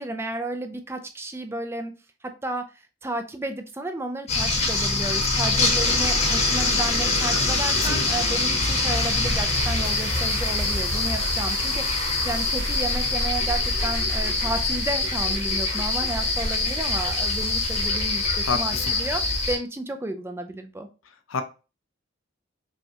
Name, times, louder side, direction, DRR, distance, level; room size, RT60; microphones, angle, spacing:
voice 1, 0.0-1.9 2.2-20.9, right 2 dB, 10° right, 0.3 m, -32 dB
sound 1, 4.3-19.6, left 3 dB, 35° left, 0.9 m, -24 dB
voice 2, 7.7-8.1 18.5-18.9 21.3-21.4, left 4 dB, 85° left, 0.6 m, -27 dB
sound 2, 8.3-17.9, right 4 dB, 50° right, 1.1 m, -40 dB
5.3 x 2.3 x 2.8 m
head